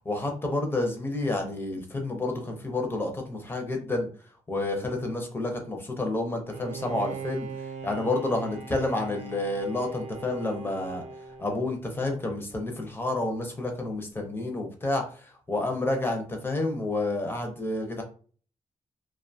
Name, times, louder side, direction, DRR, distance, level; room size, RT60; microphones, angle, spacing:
voice 1, 0.1-4.1 4.5-7.5 7.8-11.0 11.4-15.0 15.5-18.0, left 2 dB, 20° left, 3 dB, 0.5 m, -29 dB
Bowed string instrument, 6.5-12.1, right 4 dB, 70° right, 0.5 m, -40 dB
2.5 x 2.2 x 2.6 m, 0.42 s
wide cardioid pair, 160°, 12 cm